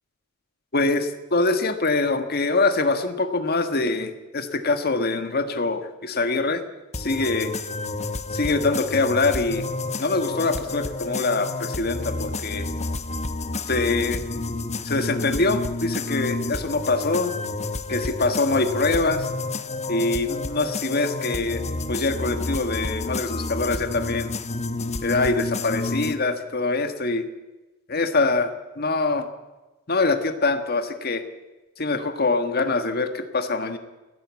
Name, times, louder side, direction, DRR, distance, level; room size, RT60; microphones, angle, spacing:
voice 1, 0.7-6.6 6.9-7.5 8.3-9.7 10.0-12.7 13.7-14.2 14.8-17.3 17.9-19.3 19.9-24.3 25.0-27.3 27.9-28.5 28.8-29.3 29.9-31.2 31.8-33.8, left 3 dB, 50° left, 7 dB, 1.6 m, -24 dB
sound 1, 6.9-26.1, left 2 dB, 35° left, 1.1 m, -30 dB
29.0 x 11.0 x 8.4 m, 1.1 s
head